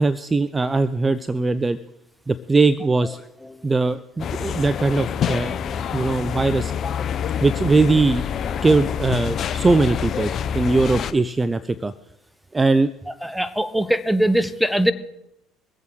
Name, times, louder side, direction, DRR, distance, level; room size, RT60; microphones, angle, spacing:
voice 1, 0.0-1.8 2.3-3.2 3.6-5.6 5.9-6.7 7.4-8.3 8.6-11.9 12.5-12.9, right 3 dB, 20° right, 14 dB, 0.5 m, -20 dB
sound 1, 4.2-11.1, left 8 dB, 50° left, 0.7 m, -26 dB
voice 2, 13.2-14.9, right 1 dB, ahead, 13 dB, 1.1 m, -21 dB
22.5 x 8.3 x 4.7 m, 0.82 s
hypercardioid pair, 60°, 0 cm